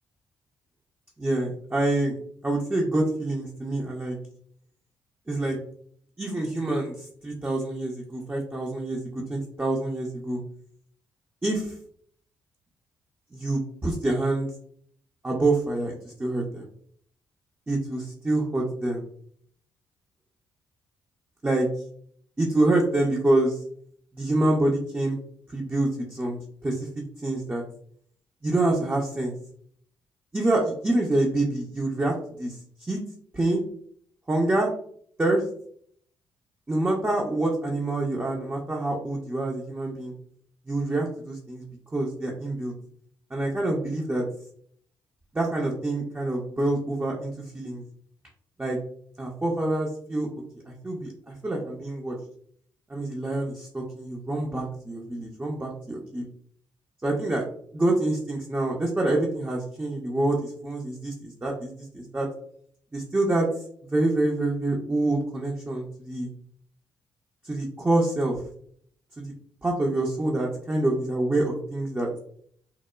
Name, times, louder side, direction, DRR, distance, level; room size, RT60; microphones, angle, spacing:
voice 1, 1.2-2.2 2.4-4.2 5.3-5.6 6.2-10.4 11.4-11.7 13.3-14.5 15.2-16.7 17.7-19.0 21.4-21.7 22.4-23.6 24.1-25.2 25.5-26.9 27.2-27.6 28.4-29.3 30.3-33.0 33.3-33.6 34.3-34.7 35.2-35.4 36.7-40.1 40.7-41.6 41.9-42.7 43.3-44.2 45.3-47.8 48.6-48.8 49.2-50.3 50.8-52.2 52.9-56.3 57.0-57.5 57.7-62.3 62.9-63.5 63.9-66.3 67.4-68.3 69.2-69.3 69.6-72.1, right 2 dB, 15° right, -2 dB, 0.5 m, -26 dB
2.9 x 2.0 x 2.2 m, 0.62 s
hypercardioid pair, 40°, 10 cm